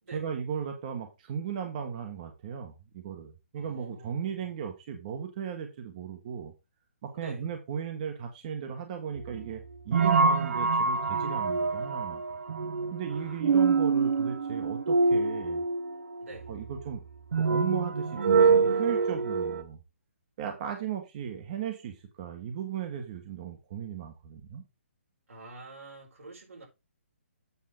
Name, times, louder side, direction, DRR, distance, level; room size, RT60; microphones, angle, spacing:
voice 1, 0.1-6.5 7.0-12.2 12.9-15.6 16.5-17.0 17.3-19.8 20.4-24.6, right 8 dB, 35° right, 1.3 m, -36 dB
voice 2, 3.5-4.4 7.1-7.5 13.1-13.4 16.2-16.5 25.3-26.7, right 3 dB, 85° right, 4.9 m, -47 dB
sound 1, 9.2-19.6, right 4 dB, 65° right, 1.1 m, -26 dB
8.3 x 6.1 x 3.8 m
hypercardioid pair, 165°, 7 cm